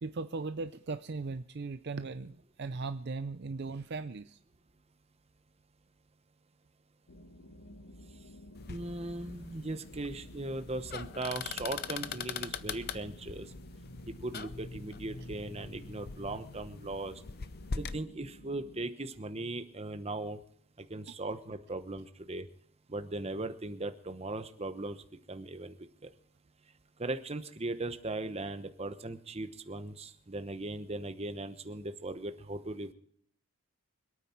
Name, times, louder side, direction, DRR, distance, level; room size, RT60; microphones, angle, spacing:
voice 1, 0.0-4.4 21.1-21.2, right 3 dB, 50° right, 10 dB, 0.5 m, -38 dB
sound 1, 7.1-18.9, equal, 70° left, 1.2 m, -53 dB
sound 2, 8.5-18.0, left 5 dB, 45° left, 0.6 m, -42 dB
voice 2, 8.7-13.5 14.2-17.2 17.8-20.4 20.8-22.5 22.9-25.0 25.3-25.8 26.0-26.1 27.0-32.9, right 2 dB, 30° right, 9 dB, 1.0 m, -38 dB
26.0 x 9.1 x 4.5 m, 0.66 s
head